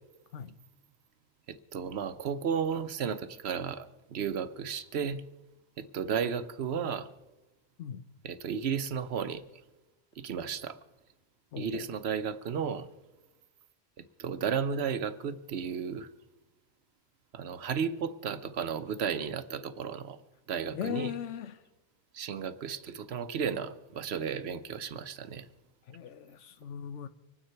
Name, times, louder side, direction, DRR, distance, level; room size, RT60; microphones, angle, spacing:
voice 1, 1.5-3.9 4.1-5.2 5.8-7.1 8.2-9.4 10.2-10.7 11.6-12.9 14.2-16.1 17.3-20.2 20.5-21.1 22.1-25.4, right 7 dB, 65° right, 0.9 m, -33 dB
voice 2, 11.5-11.9 20.7-21.6 25.9-27.1, left 9 dB, 75° left, 1.0 m, -38 dB
25.5 x 9.4 x 4.5 m
omnidirectional pair, 1.3 m